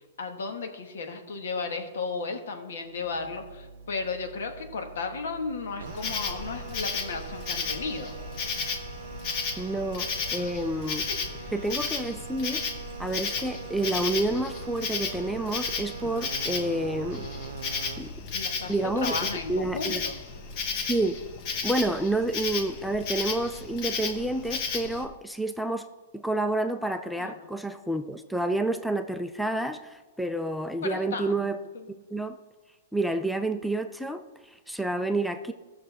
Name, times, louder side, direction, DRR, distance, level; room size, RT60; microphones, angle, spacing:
voice 1, 0.2-8.1 10.3-10.5 11.4-11.5 18.3-20.2 27.2-27.5 30.8-31.5 31.7-31.9, left 4 dB, 80° left, 5 dB, 1.5 m, -34 dB
sound 1, 2.9-20.1, right 6 dB, 85° right, 0.6 m, -43 dB
Insect, 5.9-25.0, left 5 dB, 30° left, 1.0 m, -34 dB
voice 2, 9.6-11.1 11.5-12.7 13.0-17.3 18.0-18.1 18.7-19.2 19.5-20.0 20.7-21.2 21.6-25.8 26.1-31.6 32.1-32.4 32.9-35.5, right 2 dB, ahead, 6 dB, 0.3 m, -29 dB
15.5 x 6.4 x 3.5 m, 1.3 s
hypercardioid pair, 165°, 0 cm